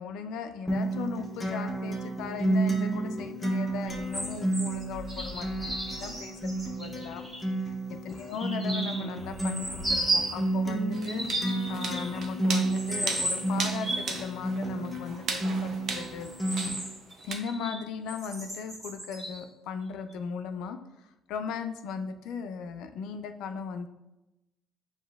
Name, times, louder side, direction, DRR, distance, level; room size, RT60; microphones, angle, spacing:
voice 1, 0.0-7.3 7.9-11.3 11.7-16.3 17.2-23.9, left 6 dB, 80° left, 8 dB, 0.3 m, -37 dB
Acoustic guitar, 0.7-16.7, right 2 dB, 10° left, 0.6 m, -31 dB
sound 1, 3.9-7.4 8.1-10.4 10.9-12.3 12.7-14.2 16.0-17.8 18.1-19.4 20.1-20.2, right 1 dB, 15° right, 1.1 m, -34 dB
sound 2, 10.9-17.4, right 4 dB, 45° right, 0.5 m, -37 dB
7.4 x 2.7 x 2.3 m, 0.96 s
cardioid pair, 170°, 0 cm